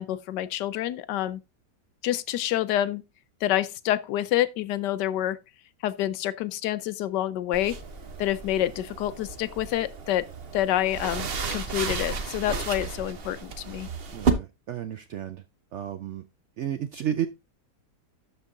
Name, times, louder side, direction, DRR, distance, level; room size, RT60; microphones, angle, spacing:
voice 1, 0.0-1.4 2.0-3.0 3.4-5.4 5.8-7.8 8.2-10.2 10.5-13.9, left 13 dB, 80° left, 1.3 m, -27 dB
sound 1, 7.5-14.3, right 5 dB, 45° right, 0.9 m, -32 dB
voice 2, 14.1-15.4 15.7-16.2 16.6-17.3, right 10 dB, 75° right, 0.6 m, -32 dB
12.5 x 4.6 x 3.7 m
omnidirectional pair, 1.8 m